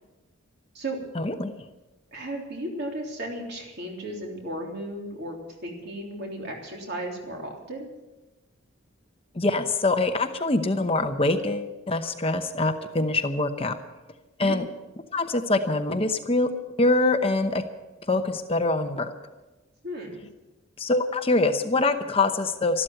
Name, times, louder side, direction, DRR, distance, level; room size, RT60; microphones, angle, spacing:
voice 1, 1.1-1.5 9.3-13.8 14.4-14.7 15.1-16.5 16.8-17.7 18.1-19.1 20.8-22.8, left 2 dB, 25° left, 7 dB, 0.9 m, -24 dB
voice 2, 2.1-5.4 5.6-7.9 14.4-14.6 19.8-20.2, right 1 dB, 50° right, 0 dB, 3.5 m, -35 dB
13.5 x 12.5 x 7.8 m, 1.1 s
head